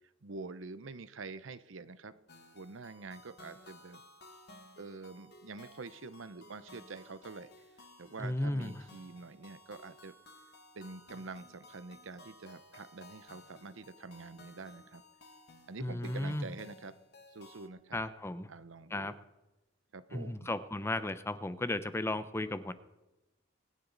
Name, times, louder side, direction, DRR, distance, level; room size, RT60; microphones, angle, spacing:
voice 1, 0.2-2.2 2.5-4.0 4.8-7.5 8.0-10.1 10.7-15.0 15.7-16.9 17.3-18.0 18.5-19.2 19.9-20.5, right 3 dB, 75° right, 13 dB, 0.8 m, -46 dB
sound 1, 2.3-17.7, left 2 dB, 60° left, 1.8 m, -57 dB
voice 2, 8.2-8.7 15.8-16.5 17.9-18.5 18.9-19.1 20.1-22.7, left 1 dB, 15° left, 13 dB, 0.6 m, -35 dB
23.5 x 10.0 x 4.0 m, 1.0 s
head